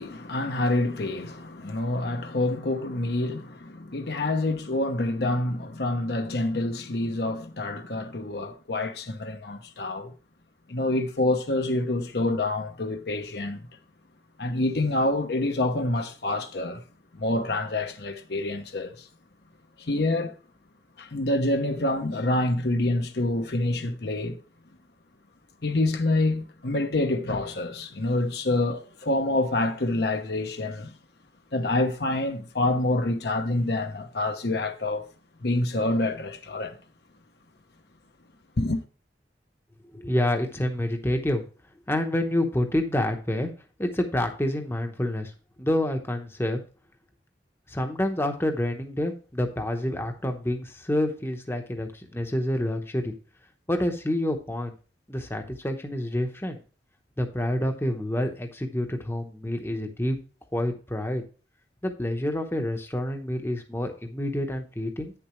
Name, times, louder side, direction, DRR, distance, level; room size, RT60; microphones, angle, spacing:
voice 1, 0.0-10.1 10.7-13.6 14.4-16.8 17.1-19.1 19.8-20.4 21.0-24.4 25.6-30.9 31.5-35.1 35.4-36.8 38.6-38.8, left 2 dB, 60° left, 0.9 m, -27 dB
voice 2, 39.9-41.4 41.9-43.5 43.8-45.3 45.6-46.6 47.7-53.1 53.7-54.7 55.1-56.6 57.2-60.2 60.5-61.2 61.8-65.1, left 1 dB, 15° left, 0.9 m, -28 dB
9.1 x 6.9 x 3.1 m
head